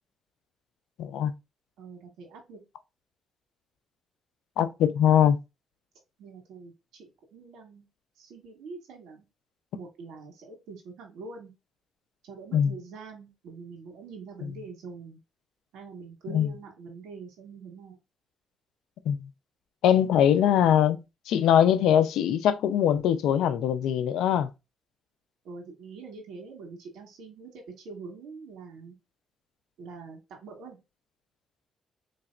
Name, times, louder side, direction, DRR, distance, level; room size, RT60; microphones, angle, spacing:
voice 1, 1.0-1.3 4.6-5.4 12.5-12.7 16.3-16.5 19.1-19.3 19.8-21.0 21.3-24.5, left 9 dB, 85° left, 0.5 m, -22 dB
voice 2, 1.8-2.6 6.2-7.8 8.2-9.2 9.7-11.5 12.2-15.2 15.7-18.0 25.4-29.0 29.8-30.8, right 4 dB, 80° right, 1.8 m, -44 dB
4.1 x 3.3 x 2.4 m
cardioid pair, 90°, 0 cm